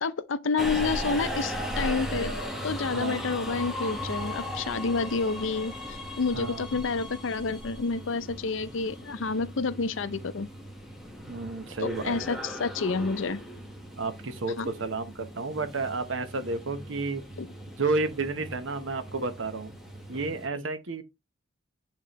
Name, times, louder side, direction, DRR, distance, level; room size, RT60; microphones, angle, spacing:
voice 1, 0.0-2.3 2.6-10.5 11.8-13.4 14.6-14.7 17.4-17.5, left 4 dB, 75° left, 0.6 m, -29 dB
Subway metro underground, 0.6-20.5, equal, ahead, 1.2 m, -37 dB
voice 2, 2.9-3.2 6.3-6.7 11.3-12.0 14.0-17.2 17.8-19.7 20.1-21.0, right 3 dB, 75° right, 0.9 m, -31 dB
8.9 x 3.7 x 3.0 m
head